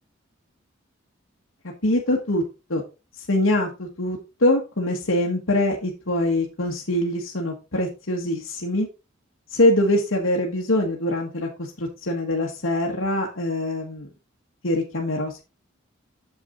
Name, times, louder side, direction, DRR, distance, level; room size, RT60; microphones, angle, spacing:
voice 1, 1.6-2.4 2.7-2.8 3.1-8.9 9.5-14.1 14.6-15.4, left 1 dB, 80° left, -1 dB, 1.5 m, -23 dB
8.3 x 7.1 x 3.8 m, 0.29 s
head